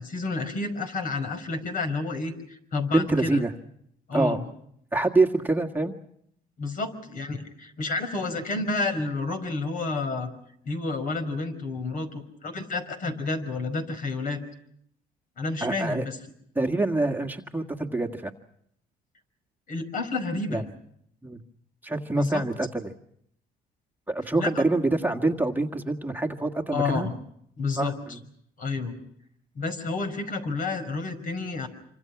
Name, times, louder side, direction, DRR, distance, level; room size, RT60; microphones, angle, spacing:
voice 1, 0.0-3.4 4.1-4.4 6.6-10.3 10.6-14.4 15.4-16.2 19.7-20.6 22.1-22.5 24.4-24.6 26.7-27.1 27.6-27.9 28.6-28.9 29.6-31.7, left 3 dB, 55° left, 8 dB, 5.3 m, -30 dB
voice 2, 2.9-3.5 4.1-4.4 4.9-5.9 15.6-16.1 16.6-18.3 20.5-20.6 21.2-21.4 21.8-22.9 24.1-27.1 27.7-27.9, right 2 dB, 10° right, 3 dB, 1.8 m, -25 dB
27.5 x 25.5 x 6.0 m, 0.72 s
cardioid pair, 110°, 17 cm